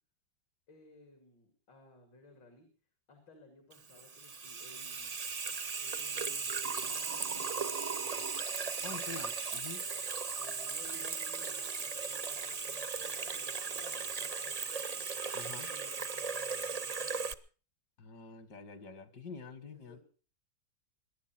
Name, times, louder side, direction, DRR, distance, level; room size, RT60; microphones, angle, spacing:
voice 1, 0.7-2.7 3.1-5.1 5.8-8.3 8.8-9.3 10.4-15.0 15.6-17.3 19.6-20.0, left 1 dB, 85° left, 5 dB, 3.3 m, -58 dB
Water tap faucet / Sink (filling or washing), 3.7-17.3, right 5 dB, 65° right, 0.3 m, -37 dB
voice 2, 8.8-9.9 15.3-15.7 18.0-20.0, left 4 dB, 70° left, 12 dB, 2.1 m, -47 dB
sound 1, 10.8-13.0, right 3 dB, 40° left, 0.6 m, -58 dB
22.0 x 10.5 x 5.9 m, 0.40 s
omnidirectional pair, 1.9 m